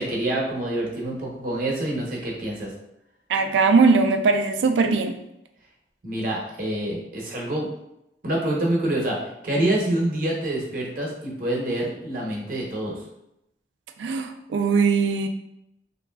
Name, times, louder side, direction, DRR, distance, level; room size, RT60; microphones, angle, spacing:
voice 1, 0.0-2.7 6.0-7.7 8.2-9.2 9.4-13.0, right 1 dB, 50° right, -2 dB, 0.7 m, -26 dB
voice 2, 3.3-5.1 14.0-15.3, right 4 dB, 90° right, 7 dB, 0.3 m, -20 dB
3.0 x 2.5 x 2.2 m, 0.83 s
head